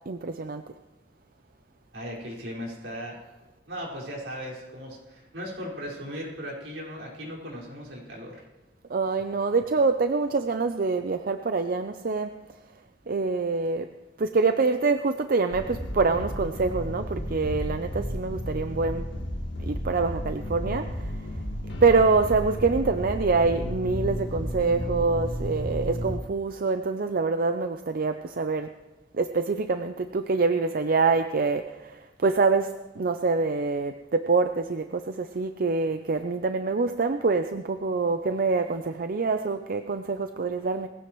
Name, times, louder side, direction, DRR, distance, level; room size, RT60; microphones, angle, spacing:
voice 1, 0.1-0.6 8.9-12.3 13.1-13.9 14.2-19.1 19.6-21.1 21.8-28.7 29.1-40.9, right 4 dB, 50° right, 8 dB, 0.6 m, -25 dB
voice 2, 1.9-3.2 3.7-8.4, equal, 80° right, -3 dB, 5.2 m, -37 dB
sound 1, 15.5-26.2, equal, 70° left, 1.8 m, -33 dB
20.5 x 15.5 x 3.1 m, 1.1 s
head